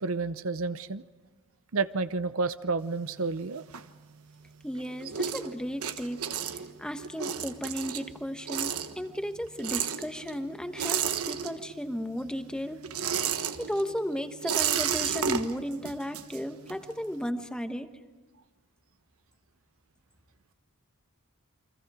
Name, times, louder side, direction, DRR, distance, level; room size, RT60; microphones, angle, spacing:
voice 1, 0.0-1.0 1.7-3.6, right 4 dB, 65° right, 12 dB, 0.7 m, -30 dB
sound 1, 2.8-4.4 4.7-12.0 12.2-16.9, right 8 dB, 85° right, 1.3 m, -33 dB
voice 2, 4.6-6.2 6.8-12.8 13.6-17.9, equal, 5° left, 7 dB, 1.2 m, -34 dB
29.5 x 24.5 x 4.9 m, 1.3 s
head